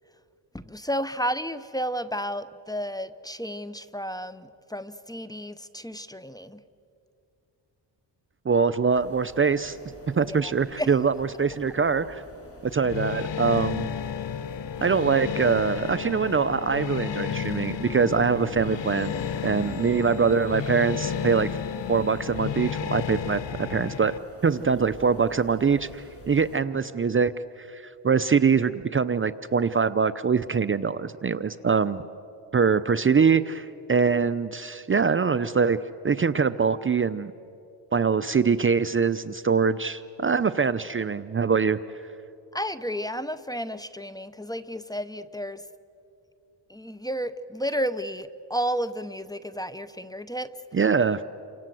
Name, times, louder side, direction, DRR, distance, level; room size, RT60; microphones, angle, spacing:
voice 1, 0.5-6.6 10.3-10.9 19.8-19.9 42.5-45.6 46.7-50.6, equal, 10° left, 14 dB, 0.8 m, -32 dB
voice 2, 8.5-9.8 10.2-12.2 12.7-13.9 14.8-19.1 19.4-21.6 21.9-24.1 24.4-27.3 27.6-32.0 32.5-35.8 36.0-37.3 37.9-41.8 50.7-51.2, right 5 dB, 30° right, 13 dB, 0.6 m, -23 dB
sound 1, 8.9-26.6, left 1 dB, 30° left, 3.0 m, -46 dB
sound 2, 12.8-24.2, left 8 dB, 70° left, 1.1 m, -32 dB
29.0 x 25.5 x 7.7 m, 2.6 s
cardioid pair, 95°, 45 cm